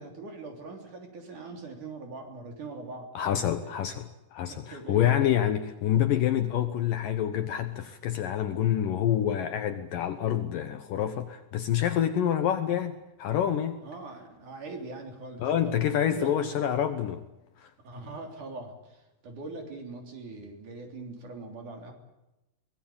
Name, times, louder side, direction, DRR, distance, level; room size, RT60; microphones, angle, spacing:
voice 1, 0.0-3.1 3.5-3.7 4.5-5.2 6.0-6.2 13.8-16.5 17.8-21.9, right 3 dB, 50° right, 4.7 m, -42 dB
voice 2, 3.1-13.8 15.4-17.2 17.6-17.7, left 10 dB, 70° left, 2.3 m, -27 dB
24.0 x 20.0 x 8.8 m
omnidirectional pair, 4.8 m